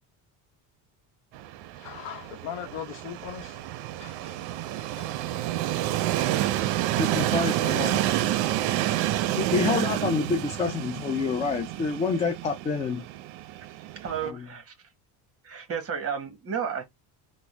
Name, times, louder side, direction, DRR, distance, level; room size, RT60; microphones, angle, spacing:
Train, 1.3-14.3, right 14 dB, 70° right, 0.5 m, -29 dB
voice 1, 1.8-3.6 4.0-4.4 5.0-5.4, left 9 dB, 70° left, 0.9 m, -39 dB
voice 2, 7.0-8.0 9.3-13.0 14.3-14.5, left 5 dB, 15° left, 0.3 m, -28 dB
voice 3, 14.0-14.7 15.4-16.8, right 7 dB, 35° right, 1.2 m, -32 dB
3.5 x 2.1 x 3.2 m
cardioid pair, 125°, 43 cm